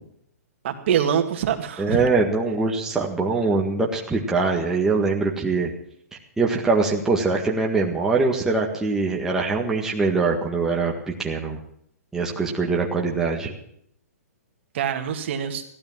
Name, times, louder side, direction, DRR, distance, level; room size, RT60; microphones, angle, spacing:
voice 1, 0.6-2.0 14.7-15.6, right 8 dB, 45° right, 5 dB, 2.0 m, -24 dB
voice 2, 1.8-5.7 6.4-11.6 12.1-13.5, right 3 dB, 5° right, -2 dB, 1.7 m, -23 dB
16.0 x 12.0 x 7.4 m, 0.69 s
hypercardioid pair, 155°, 9 cm